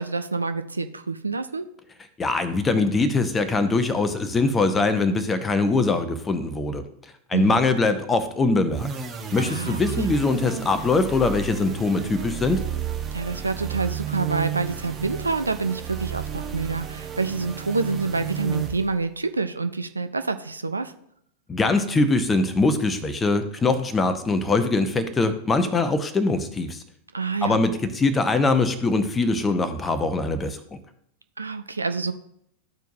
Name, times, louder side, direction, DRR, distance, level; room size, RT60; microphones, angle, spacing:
voice 1, 0.0-1.6 7.3-7.6 9.4-10.1 13.1-20.9 27.1-27.6 31.4-32.1, right 4 dB, 80° right, 10 dB, 0.4 m, -27 dB
voice 2, 2.2-6.9 7.3-8.9 9.3-12.6 21.5-26.8 27.4-30.8, left 3 dB, 15° left, 9 dB, 0.8 m, -22 dB
sound 1, 8.7-19.1, right 8 dB, 20° right, 1.0 m, -32 dB
13.0 x 4.6 x 2.7 m, 0.71 s
figure-of-eight pair, 90°, 0 cm